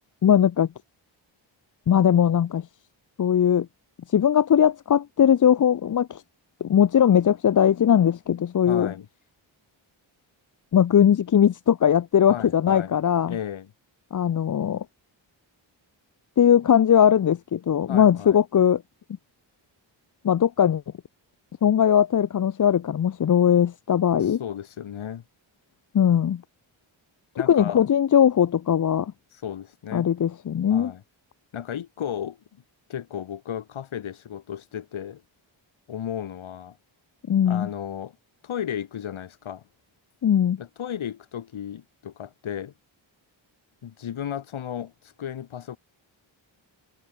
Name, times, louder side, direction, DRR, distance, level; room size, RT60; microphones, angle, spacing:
voice 1, 0.2-0.7 1.9-2.6 3.2-3.7 4.1-6.2 6.6-8.9 10.7-13.4 14.1-14.8 16.4-18.8 20.2-20.8 21.6-24.4 25.9-26.4 27.5-29.1 29.9-30.9 37.3-37.7 40.2-40.6, left 9 dB, 40° left, 0.6 m, -20 dB
voice 2, 8.7-9.1 12.3-12.9 13.3-13.7 17.9-18.4 24.2-25.2 27.4-27.8 29.3-30.1 30.7-31.0 31.5-32.4 32.9-35.2 35.9-36.8 37.5-38.2 38.4-39.6 40.6-42.7 43.8-45.8, left 9 dB, 80° left, 3.0 m, -34 dB
wide cardioid pair, 180°, 47 cm